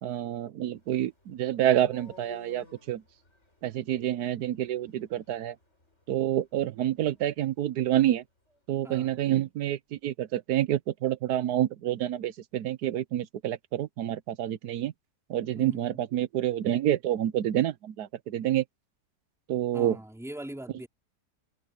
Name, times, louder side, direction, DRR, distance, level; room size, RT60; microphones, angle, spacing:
voice 1, 0.0-3.0 3.6-5.6 6.1-8.2 8.7-14.9 15.3-18.6 19.5-20.0, right 12 dB, 70° right, 1.3 m, -28 dB
sound 1, 0.7-8.7, left 2 dB, 40° left, 7.9 m, -57 dB
voice 2, 8.8-9.2 15.5-16.0 19.7-20.9, right 1 dB, ahead, 3.5 m, -41 dB
omnidirectional pair, 1.8 m